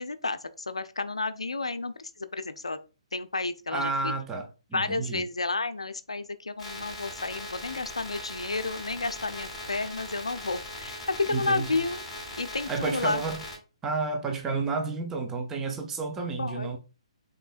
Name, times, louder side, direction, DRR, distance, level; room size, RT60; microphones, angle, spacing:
voice 1, 0.0-2.8 3.1-4.1 4.7-12.0 12.4-13.2 16.4-16.8, left 3 dB, 70° left, 0.5 m, -31 dB
voice 2, 3.7-5.2 11.3-11.7 12.7-13.4 13.8-16.8, right 3 dB, 10° right, 0.7 m, -31 dB
sound 1, 6.6-13.6, left 1 dB, 5° left, 1.9 m, -40 dB
5.3 x 3.8 x 2.4 m
figure-of-eight pair, 130°, 3 cm